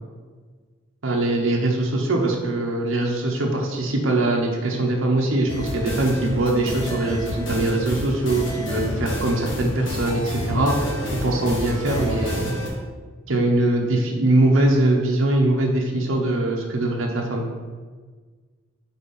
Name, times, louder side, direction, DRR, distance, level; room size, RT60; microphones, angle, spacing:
voice 1, 1.0-12.5 13.3-17.5, right 2 dB, 85° right, -1 dB, 0.9 m, -22 dB
sound 1, 5.5-12.7, equal, 70° left, 1.3 m, -29 dB
4.2 x 4.1 x 5.4 m, 1.5 s
head